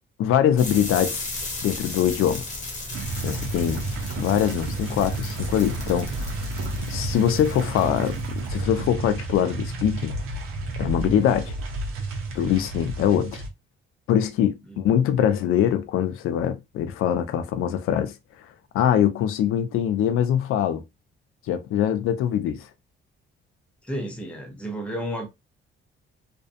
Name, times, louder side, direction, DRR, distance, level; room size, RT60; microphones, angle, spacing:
voice 1, 0.2-1.3 1.6-2.4 3.2-3.8 4.2-6.1 6.9-10.1 10.8-11.5 12.4-13.4 14.1-18.1 18.7-20.8 21.5-22.7, left 10 dB, 85° left, 0.4 m, -23 dB
sound 1, 0.6-8.5, left 2 dB, 35° left, 0.8 m, -36 dB
sound 2, 2.9-13.5, right 2 dB, 85° right, 0.7 m, -31 dB
voice 2, 23.9-25.3, equal, 5° left, 0.6 m, -32 dB
2.5 x 2.2 x 2.4 m
cardioid pair, 155°, 21 cm